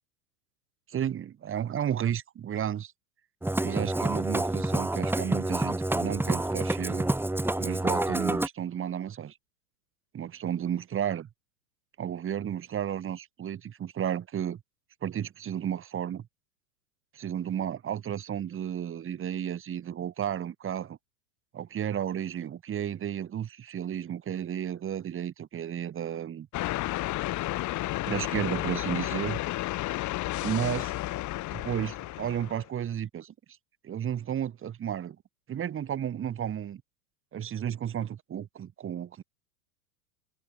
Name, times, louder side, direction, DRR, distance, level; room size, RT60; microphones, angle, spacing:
voice 1, 0.9-2.9 3.6-7.1 7.6-9.3 10.1-11.3 12.0-14.6 15.0-16.2 17.1-21.0 21.5-26.5 28.1-29.4 30.4-30.9 31.5-33.3 33.8-35.2 35.5-36.8 37.3-39.2, right 9 dB, 30° right, 5.1 m, -33 dB
Musical instrument, 3.4-8.5, right 1 dB, 5° right, 7.0 m, -28 dB
sound 1, 26.5-32.7, left 17 dB, 40° left, 3.1 m, -32 dB
hypercardioid pair, 105°, 45 cm